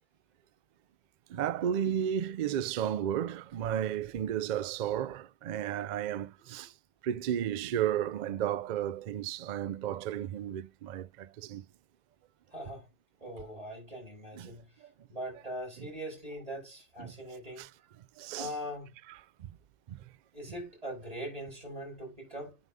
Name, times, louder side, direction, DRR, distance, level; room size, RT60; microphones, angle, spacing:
voice 1, 1.3-6.7 7.0-11.7 14.3-14.5 17.0-17.1 17.6-17.7 18.2-18.5 19.4-19.5 19.9-20.0, right 10 dB, 85° right, 0.4 m, -33 dB
voice 2, 12.5-12.9 13.2-14.7 15.1-17.7 18.4-18.9 20.3-22.6, equal, 30° right, 5.2 m, -41 dB
9.0 x 3.9 x 3.5 m
omnidirectional pair, 1.3 m